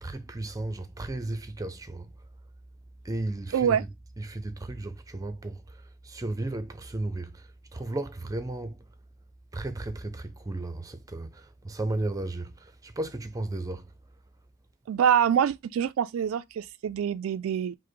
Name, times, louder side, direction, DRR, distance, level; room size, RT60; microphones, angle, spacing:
voice 1, 0.0-2.1 3.0-3.9 4.2-8.9 9.5-13.9, right 2 dB, 15° right, 0.5 m, -34 dB
voice 2, 3.5-3.8 14.9-17.8, right 8 dB, 80° right, 0.3 m, -25 dB
4.9 x 2.0 x 4.4 m
head